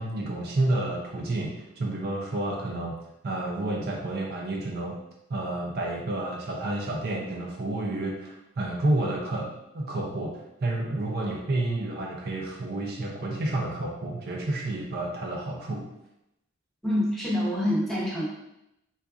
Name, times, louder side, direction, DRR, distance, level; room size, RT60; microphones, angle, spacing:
voice 1, 0.0-2.9 3.2-5.0 5.3-15.9, right 2 dB, 45° right, -1 dB, 0.4 m, -30 dB
voice 2, 16.8-18.3, left 1 dB, ahead, -6 dB, 0.7 m, -26 dB
3.7 x 2.4 x 2.3 m, 0.85 s
head